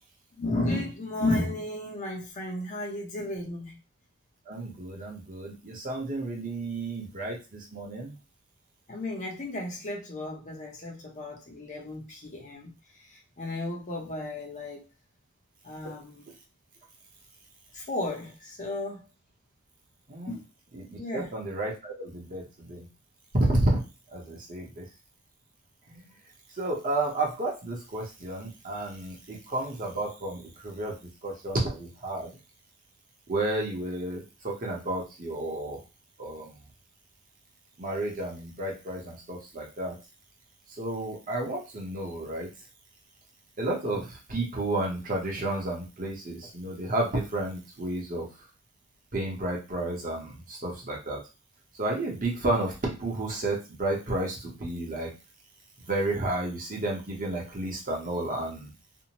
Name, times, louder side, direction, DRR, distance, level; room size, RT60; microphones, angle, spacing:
voice 1, 0.3-3.8 8.9-14.8 15.6-16.2 17.7-19.1 20.3-20.4 21.0-21.3, left 2 dB, 35° left, -1 dB, 0.7 m, -33 dB
voice 2, 4.5-8.1 15.8-15.9 20.1-20.3 20.7-22.9 23.4-23.8 24.1-24.9 25.9-26.0 26.5-32.4 33.3-35.8 36.2-36.5 37.8-39.9 40.7-42.5 43.6-48.3 49.1-51.2 51.8-55.1 55.8-58.7, right 2 dB, 40° right, -1 dB, 0.8 m, -31 dB
2.6 x 2.1 x 2.9 m, 0.29 s
head